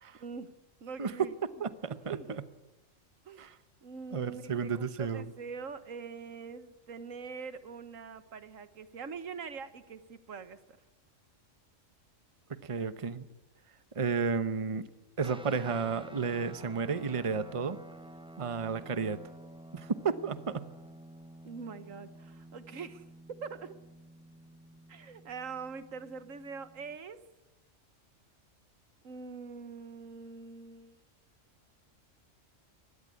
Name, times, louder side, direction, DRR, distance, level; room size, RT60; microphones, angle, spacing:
voice 1, 0.2-0.5 0.8-1.3 2.1-2.4 3.2-3.5 3.8-10.8 21.4-23.0 23.4-23.7 24.9-27.2 29.0-31.0, right 5 dB, 85° right, 12 dB, 1.6 m, -43 dB
voice 2, 1.6-2.2 3.4-3.5 4.1-5.3 12.5-13.3 13.9-14.9 15.2-17.8 18.4-19.2 19.7-20.7, right 5 dB, 30° right, 13 dB, 0.9 m, -32 dB
sound 1, 15.2-27.0, right 1 dB, 5° right, 0.9 m, -51 dB
23.5 x 19.5 x 8.4 m, 1.0 s
omnidirectional pair, 1.3 m